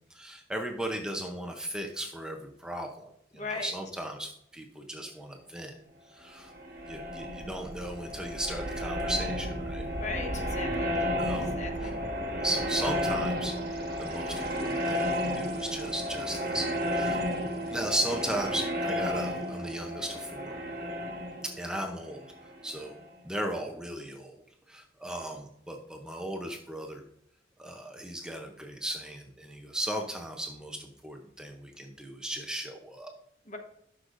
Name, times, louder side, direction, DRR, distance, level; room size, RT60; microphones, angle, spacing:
voice 1, 0.1-5.7 6.1-6.5 6.9-9.9 11.2-11.9 12.4-17.2 17.7-20.5 21.6-22.2 22.6-22.9 23.2-24.4 24.7-27.0 27.6-33.1, right 1 dB, 5° right, 2 dB, 0.6 m, -36 dB
voice 2, 3.3-3.7 10.0-10.9 11.5-11.9 33.5-33.6, left 3 dB, 40° left, 4 dB, 1.1 m, -37 dB
time travelling machine, 6.4-23.0, equal, 55° right, 1.3 m, -32 dB
11.5 x 6.4 x 2.5 m, 0.76 s
head